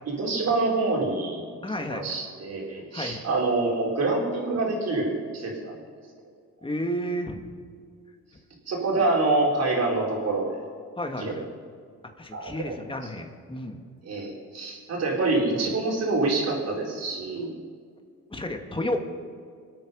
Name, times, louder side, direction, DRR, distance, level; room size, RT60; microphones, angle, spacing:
voice 1, 0.2-1.5 1.8-5.8 8.7-10.6 11.2-11.4 12.3-12.7 14.0-17.5, right 2 dB, 55° right, -2 dB, 4.4 m, -26 dB
voice 2, 1.6-2.1 2.9-3.2 6.6-7.5 11.0-11.4 12.2-13.8 18.3-19.0, equal, 15° left, 4 dB, 2.0 m, -31 dB
25.5 x 8.8 x 5.4 m, 2.1 s
cardioid pair, 90°, 30 cm